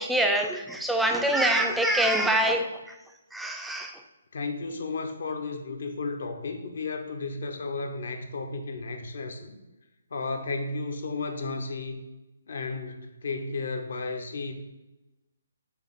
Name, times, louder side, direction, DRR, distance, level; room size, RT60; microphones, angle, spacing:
voice 1, 0.0-3.0 3.3-4.0, right 1 dB, ahead, 3 dB, 0.3 m, -25 dB
voice 2, 4.3-9.6 10.1-12.0 12.5-14.5, left 3 dB, 55° left, 6 dB, 0.6 m, -33 dB
4.9 x 2.4 x 4.3 m, 1.0 s
figure-of-eight pair, 135°, 0 cm